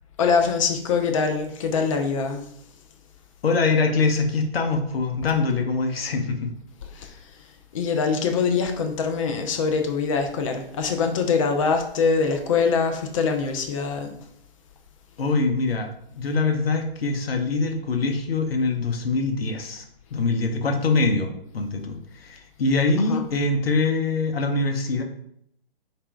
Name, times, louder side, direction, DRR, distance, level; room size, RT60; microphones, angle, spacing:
voice 1, 0.2-2.4 5.2-5.3 6.9-7.1 7.7-14.1 23.1-23.2, left 5 dB, 35° left, 4 dB, 0.4 m, -23 dB
voice 2, 3.4-6.5 15.2-15.9 16.1-19.8 20.1-25.0, left 3 dB, 75° left, 3 dB, 0.8 m, -23 dB
4.1 x 2.6 x 3.4 m, 0.71 s
figure-of-eight pair, 135°, 30 cm